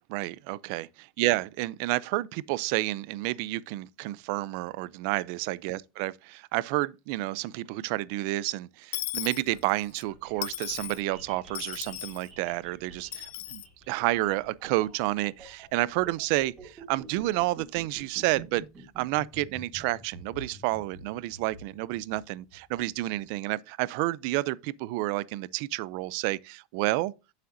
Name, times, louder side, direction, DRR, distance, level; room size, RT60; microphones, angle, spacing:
voice 1, 0.1-0.9 1.2-18.7 19.0-27.1, right 18 dB, 50° right, 0.4 m, -30 dB
Dishes pots and pans / Coin (dropping), 8.9-10.0 10.4-11.0 11.5-12.3 13.1-13.7, left 16 dB, 75° left, 0.4 m, -36 dB
sound 1, 9.5-23.3, right 2 dB, 15° right, 2.3 m, -49 dB
8.6 x 7.4 x 2.6 m
supercardioid pair, 175°, 0 cm